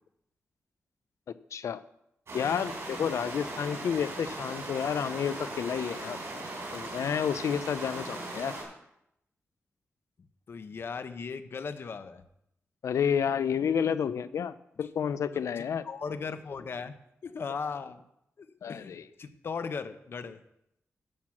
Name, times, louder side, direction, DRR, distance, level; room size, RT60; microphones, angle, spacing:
voice 1, 1.3-1.8 2.3-6.2 6.7-8.5 12.8-15.8 18.6-19.0, left 7 dB, 90° left, 15 dB, 0.5 m, -30 dB
sound 1, 2.3-8.6, right 2 dB, 70° right, 3.9 m, -39 dB
voice 2, 10.5-12.2 15.3-17.0 17.2-18.0 18.4-20.4, left 5 dB, 50° left, 11 dB, 0.7 m, -38 dB
11.0 x 6.0 x 5.9 m, 0.80 s
wide cardioid pair, 160°, 5 cm